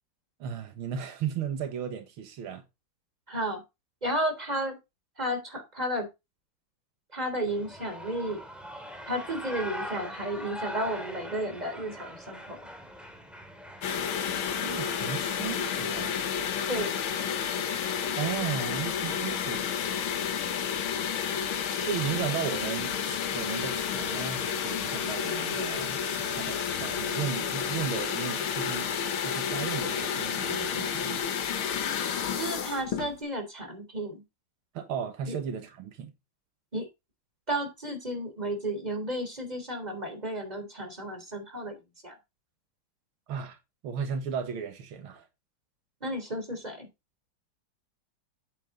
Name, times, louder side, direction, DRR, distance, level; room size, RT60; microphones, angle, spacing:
voice 1, 0.4-2.6 14.6-16.1 18.2-19.6 21.7-28.9 29.2-31.2 34.7-36.1 43.3-43.6 43.8-45.3, right 8 dB, 90° right, 2.2 m, -35 dB
voice 2, 3.3-3.6 4.0-4.8 5.2-6.1 7.1-8.4 9.1-12.6 16.7-17.0 32.4-34.2 35.3-35.4 36.7-36.9 37.5-41.8 42.0-42.2 46.0-46.9, right 1 dB, 20° right, 3.5 m, -32 dB
Shout / Cheering, 7.5-15.2, equal, ahead, 2.2 m, -41 dB
sound 1, 13.8-33.2, left 7 dB, 85° left, 2.0 m, -31 dB
8.5 x 8.0 x 3.8 m
omnidirectional pair, 2.2 m